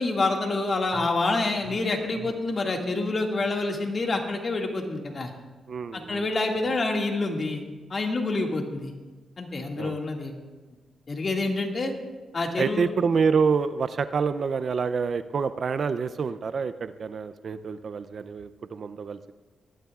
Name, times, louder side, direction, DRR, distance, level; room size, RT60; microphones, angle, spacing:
voice 1, 0.0-5.3 5.9-7.6 7.9-8.9 9.4-10.3 11.1-11.9 12.3-12.9, left 2 dB, 45° left, 2 dB, 2.0 m, -27 dB
voice 2, 5.7-6.3 6.6-6.7 9.8-10.0 12.6-19.3, right 5 dB, 60° right, 13 dB, 0.5 m, -27 dB
19.0 x 12.5 x 2.4 m, 1.2 s
cardioid pair, 65°, 0 cm